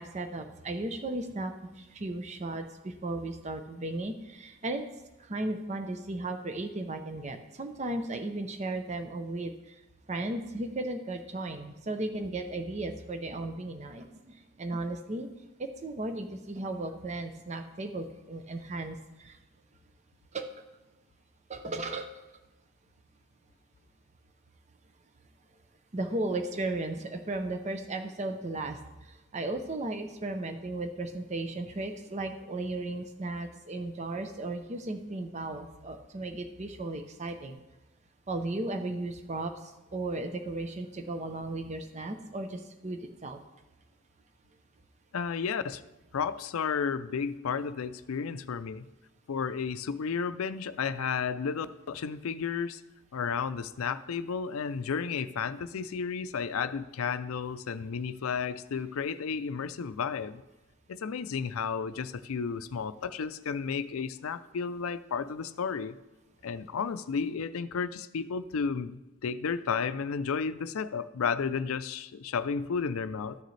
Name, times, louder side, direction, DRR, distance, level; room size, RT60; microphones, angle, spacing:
voice 1, 0.0-4.9 5.2-9.7 10.1-15.3 15.6-19.4 20.3-20.6 21.5-22.2 25.9-37.6 38.3-43.4, right 2 dB, 35° right, 7 dB, 0.6 m, -35 dB
voice 2, 45.1-45.8 46.1-48.9 49.3-52.8 53.1-60.4 60.9-65.9 66.4-73.4, left 6 dB, 85° left, 13 dB, 0.4 m, -32 dB
13.0 x 6.6 x 3.2 m, 1.1 s
head